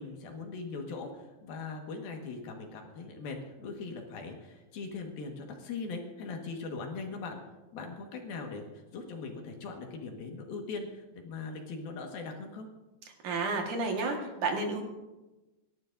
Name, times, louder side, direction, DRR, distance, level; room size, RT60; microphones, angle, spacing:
voice 1, 0.0-7.4 7.7-12.7, left 4 dB, 70° left, 2 dB, 3.3 m, -40 dB
voice 2, 13.2-14.8, right 3 dB, 60° right, 2 dB, 2.8 m, -31 dB
28.5 x 12.0 x 2.6 m, 1.1 s
omnidirectional pair, 4.5 m